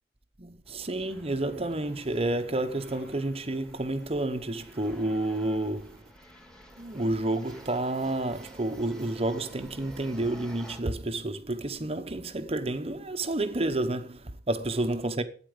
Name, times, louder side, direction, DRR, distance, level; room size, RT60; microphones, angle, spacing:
voice 1, 0.4-6.0 6.8-15.2, right 2 dB, 35° right, 1.1 m, -30 dB
sound 1, 0.6-10.8, right 1 dB, 5° left, 2.3 m, -52 dB
13.0 x 9.2 x 5.1 m
head